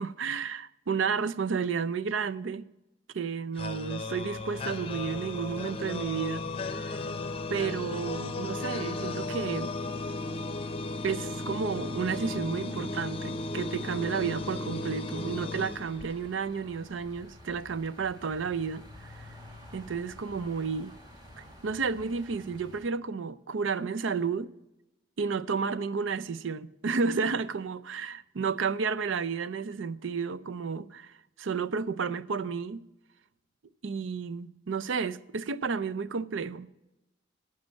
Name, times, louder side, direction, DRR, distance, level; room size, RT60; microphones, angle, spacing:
voice 1, 0.0-2.7 3.1-6.4 6.7-7.0 7.5-9.7 11.0-19.3 19.7-20.9 21.4-24.5 25.2-32.8 33.8-36.7, right 5 dB, 85° right, 0.5 m, -32 dB
sound 1, 3.6-16.5, left 3 dB, 30° left, 0.6 m, -35 dB
sound 2, 4.1-22.9, equal, 20° right, 1.8 m, -53 dB
10.5 x 6.6 x 8.1 m
head